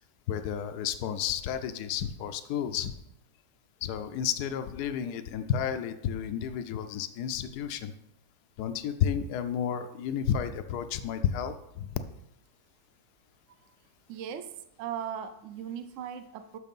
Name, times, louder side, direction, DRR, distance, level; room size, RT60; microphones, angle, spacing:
voice 1, 0.3-2.9 3.8-7.9 8.6-12.0, left 9 dB, 80° left, 9 dB, 1.1 m, -31 dB
voice 2, 14.1-16.6, right 8 dB, 65° right, 11 dB, 0.9 m, -38 dB
6.6 x 6.3 x 5.3 m, 0.82 s
omnidirectional pair, 1.7 m